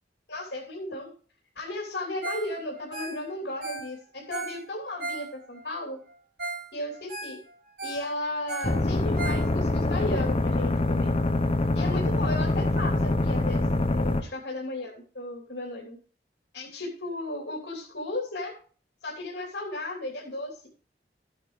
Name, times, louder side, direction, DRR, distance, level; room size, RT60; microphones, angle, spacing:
voice 1, 0.3-1.1 1.5-6.0 6.7-7.4 7.8-11.2 11.7-16.0 16.5-18.5 19.0-20.7, left 2 dB, 80° left, -1 dB, 3.1 m, -35 dB
Ringtone, 2.2-2.5 2.8-5.7 6.1-6.2 6.4-6.7 6.9-9.8 10.3-10.4, right 3 dB, 70° right, 5.7 m, -37 dB
sound 1, 8.6-14.2, left 2 dB, 35° left, 0.8 m, -25 dB
13.5 x 8.9 x 3.2 m, 0.42 s
head